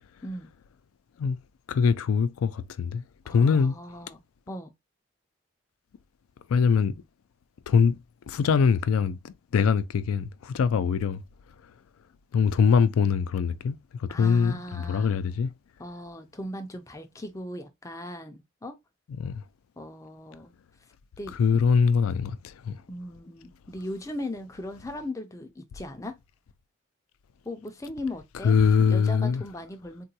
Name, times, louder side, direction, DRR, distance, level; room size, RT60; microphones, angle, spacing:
voice 1, 1.7-3.8 6.5-6.9 7.7-8.0 8.3-11.2 12.3-15.5 19.2-19.4 21.4-22.7 28.4-29.4, left 6 dB, 90° left, 0.3 m, -23 dB
voice 2, 3.2-4.2 4.5-4.7 14.1-15.2 15.8-18.8 19.8-20.5 21.2-21.6 22.9-26.2 27.4-30.1, left 1 dB, 15° left, 0.4 m, -38 dB
3.7 x 2.2 x 2.7 m
head